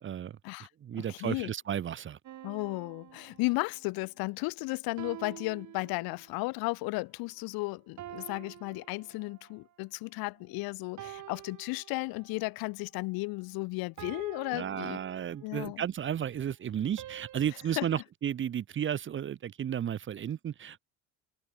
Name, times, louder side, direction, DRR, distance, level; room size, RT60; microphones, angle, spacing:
voice 1, 0.0-0.4 0.8-2.2 14.5-20.9, right 9 dB, 35° right, 0.8 m, -33 dB
voice 2, 1.1-1.5 2.4-15.0 15.4-15.8 17.8-17.9, left 25 dB, 80° left, 2.5 m, -34 dB
sound 1, 2.2-3.9 5.0-6.5 8.0-9.6 11.0-12.5 14.0-15.7 17.0-18.0, right 12 dB, 55° right, 2.6 m, -48 dB
cardioid pair, 110°, 35 cm